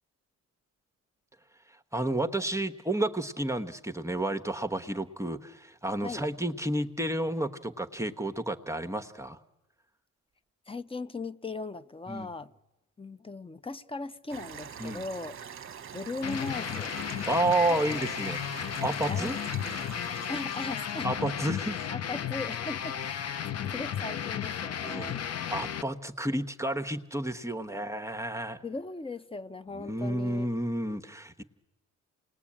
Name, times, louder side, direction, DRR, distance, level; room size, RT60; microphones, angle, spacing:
voice 1, 1.7-9.4 12.1-12.3 14.8-15.0 17.3-18.4 18.8-19.4 21.0-21.9 24.8-25.2 25.5-28.6 29.7-31.4, right 1 dB, 10° right, 1.2 m, -31 dB
voice 2, 10.7-12.5 13.0-15.4 15.9-16.9 17.7-18.1 19.1-19.3 19.6-19.9 20.3-21.3 21.9-25.2 25.5-25.6 28.6-30.5, left 3 dB, 20° left, 0.8 m, -38 dB
sound 1, 14.3-21.3, right 8 dB, 45° right, 1.0 m, -44 dB
sound 2, 16.2-25.8, left 9 dB, 55° left, 0.8 m, -34 dB
27.5 x 20.0 x 8.7 m
cardioid pair, 90°, 30 cm